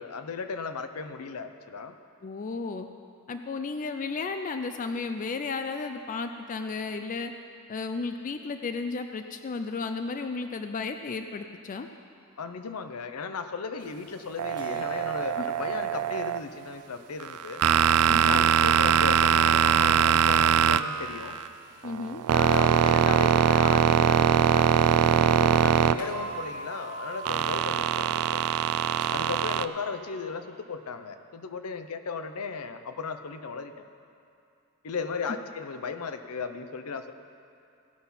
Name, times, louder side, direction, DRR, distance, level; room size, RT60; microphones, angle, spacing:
voice 1, 0.0-2.0 12.4-17.6 18.3-21.4 22.3-28.4 29.1-33.8 34.8-37.1, left 5 dB, 75° left, 9 dB, 0.6 m, -36 dB
voice 2, 2.2-2.9 3.3-7.3 7.7-11.9 15.4-15.5 18.1-18.4 21.8-22.2, left 4 dB, 35° left, 7 dB, 0.4 m, -33 dB
sound 1, 14.4-16.4 17.2-21.5 21.8-26.4 27.3-29.6, right 9 dB, 75° right, 0.3 m, -22 dB
sound 2, 14.6-16.7 17.9-18.9 20.2-21.4 22.5-25.6 26.0-30.4, right 3 dB, 20° right, 2.2 m, -44 dB
16.5 x 5.7 x 5.6 m, 2.5 s
head